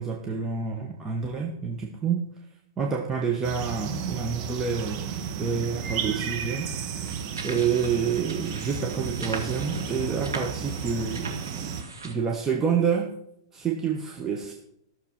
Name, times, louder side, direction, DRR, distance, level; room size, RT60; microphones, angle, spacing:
voice 1, 0.0-2.2 2.8-6.7 6.9-13.1 13.5-14.5, right 6 dB, 20° right, 1 dB, 1.2 m, -28 dB
sound 1, 3.4-11.8, right 7 dB, 40° right, 1.3 m, -33 dB
sound 2, 7.0-12.1, right 3 dB, 85° right, 1.8 m, -40 dB
13.5 x 6.7 x 5.9 m, 0.75 s
figure-of-eight pair, 105°, 2 cm